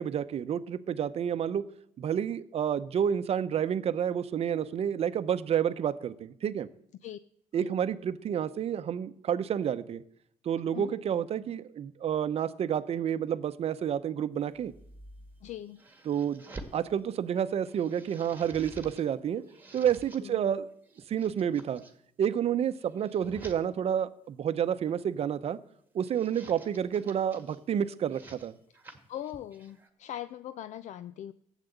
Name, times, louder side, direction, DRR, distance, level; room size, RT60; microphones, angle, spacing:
voice 1, 0.0-1.7 2.0-6.7 7.5-10.0 10.4-14.7 16.0-16.4 16.7-19.4 19.7-20.7 21.1-21.8 22.2-25.6 25.9-28.5, right 9 dB, 45° right, 13 dB, 0.8 m, -29 dB
sound 1, 14.5-16.8 17.3-19.1 19.4-20.2 20.8-21.9 22.5-23.6 24.7-25.1 25.9-27.6 28.0-29.9, right 2 dB, 15° right, 1.7 m, -50 dB
voice 2, 15.4-15.8 20.2-20.4 29.1-31.3, left 11 dB, 55° left, 13 dB, 0.5 m, -41 dB
14.5 x 8.2 x 8.0 m, 0.72 s
cardioid pair, 135°, 14 cm